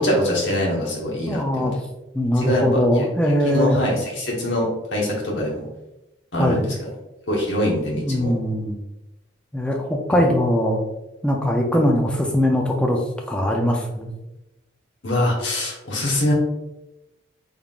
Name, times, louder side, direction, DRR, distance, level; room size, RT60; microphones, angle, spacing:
voice 1, 0.0-1.7 2.3-2.6 2.9-3.1 3.4-5.6 6.3-6.9 7.3-8.3 15.0-16.3, left 1 dB, 70° left, -2 dB, 1.2 m, -23 dB
voice 2, 1.3-1.7 2.1-3.8 6.4-6.6 8.0-8.8 9.5-10.8 11.2-13.0 13.3-14.1, equal, 5° left, 0 dB, 0.4 m, -21 dB
3.7 x 3.5 x 2.4 m, 0.96 s
head